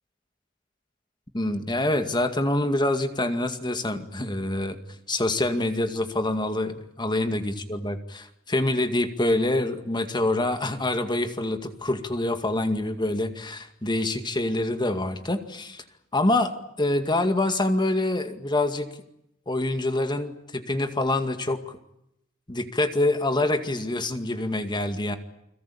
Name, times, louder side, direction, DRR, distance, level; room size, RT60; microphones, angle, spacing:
voice 1, 1.3-4.8 5.1-15.8 16.1-18.9 19.5-21.8 22.5-25.2, left 2 dB, 25° left, 8 dB, 2.2 m, -26 dB
29.5 x 22.0 x 8.7 m, 0.80 s
head